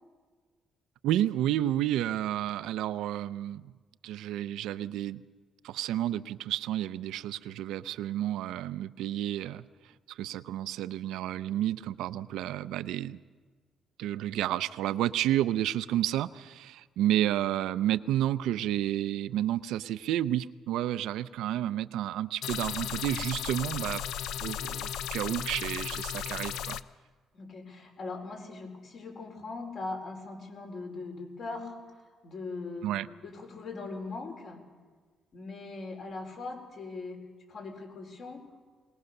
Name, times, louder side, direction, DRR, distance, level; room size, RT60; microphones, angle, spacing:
voice 1, 1.0-3.7 4.0-5.2 5.6-9.6 10.1-13.2 14.0-24.0 24.4-26.8 32.8-33.1, right 12 dB, 90° right, 14 dB, 0.5 m, -31 dB
sound 1, 22.4-26.8, left 10 dB, 85° left, 0.5 m, -35 dB
voice 2, 27.3-32.9 33.2-34.6 35.3-37.2 37.5-38.4, left 3 dB, 60° left, 2 dB, 4.5 m, -40 dB
21.0 x 19.5 x 6.6 m, 1.4 s
cardioid pair, 90°, 0 cm